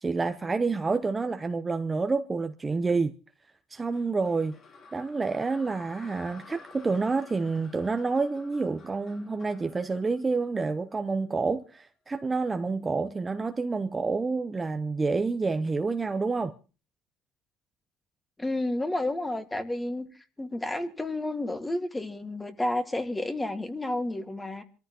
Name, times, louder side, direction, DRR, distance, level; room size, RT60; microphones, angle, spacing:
voice 1, 0.0-3.1 3.7-4.6 4.9-16.5, right 4 dB, 20° right, 0.8 m, -28 dB
sound 1, 3.9-11.1, left 4 dB, 50° left, 4.9 m, -52 dB
voice 2, 18.4-20.1 20.4-24.6, left 1 dB, 10° left, 1.8 m, -31 dB
27.0 x 14.0 x 2.9 m
cardioid pair, 120°, 0 cm